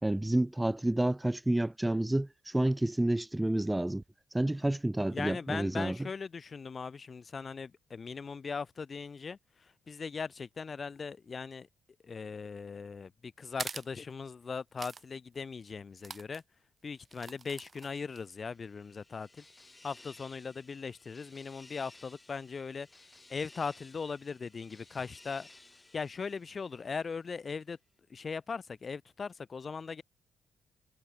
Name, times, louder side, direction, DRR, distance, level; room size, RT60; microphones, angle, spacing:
voice 1, 0.0-4.0 4.3-6.0, right 1 dB, 10° right, 1.0 m, -29 dB
voice 2, 5.1-11.7 12.0-16.4 16.8-19.4 19.8-22.9 23.3-25.5 25.9-27.8 28.1-30.0, left 5 dB, 40° left, 2.0 m, -39 dB
sound 1, 13.5-13.9 14.8-15.0 15.3-15.4 16.0-16.4 17.0-18.2, right 5 dB, 35° right, 1.5 m, -43 dB
sound 2, 18.3-27.3, left 2 dB, 15° left, 3.7 m, -58 dB
cardioid pair, 90°, 0 cm